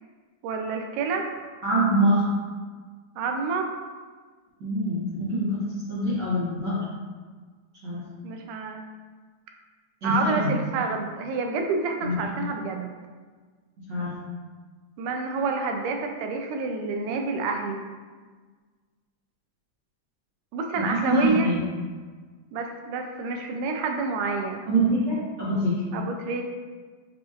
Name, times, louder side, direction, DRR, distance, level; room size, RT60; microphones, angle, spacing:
voice 1, 0.4-1.3 3.2-3.7 8.2-8.8 10.0-12.9 15.0-17.8 20.5-21.5 22.5-24.7 25.9-26.4, right 4 dB, 85° right, 3 dB, 2.1 m, -28 dB
voice 2, 1.6-2.3 4.6-6.8 7.8-8.1 10.0-10.5 12.0-12.4 13.8-14.1 20.8-21.6 24.7-25.8, right 1 dB, 65° right, -11 dB, 1.0 m, -25 dB
7.5 x 2.8 x 2.4 m, 1.5 s
omnidirectional pair, 3.6 m